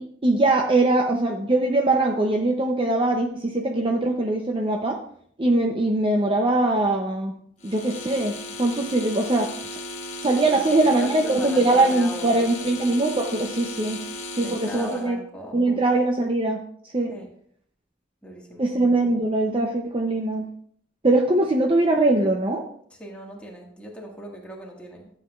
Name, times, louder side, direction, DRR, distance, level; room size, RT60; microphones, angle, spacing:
voice 1, 0.0-5.0 5.4-7.3 7.6-9.5 10.2-14.0 14.4-15.2 15.5-16.6 16.9-17.1 18.6-20.5 21.0-22.6, right 2 dB, 30° right, 2 dB, 0.6 m, -22 dB
sound 1, 7.6-15.1, left 2 dB, 40° left, 1.2 m, -36 dB
voice 2, 10.5-12.9 14.4-15.9 17.1-17.3 18.2-18.7 22.9-25.1, equal, 5° left, -2 dB, 1.8 m, -39 dB
12.5 x 7.9 x 2.4 m, 0.62 s
head